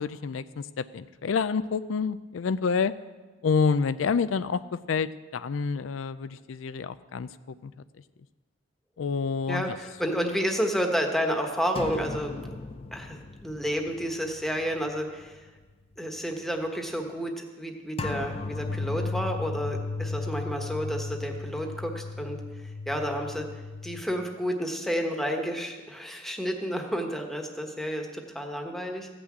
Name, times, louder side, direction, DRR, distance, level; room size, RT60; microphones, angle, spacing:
voice 1, 0.0-2.9 3.4-4.6 4.9-7.3 7.6-7.7 9.0-9.8, left 5 dB, 85° left, 14 dB, 0.4 m, -28 dB
voice 2, 9.5-12.4 12.9-15.5 16.0-23.5 23.8-29.1, equal, ahead, 3 dB, 1.2 m, -31 dB
sound 1, 11.8-14.9 15.2-15.4 18.0-24.0, left 3 dB, 30° left, 0.6 m, -35 dB
15.0 x 6.1 x 8.4 m, 1.3 s
head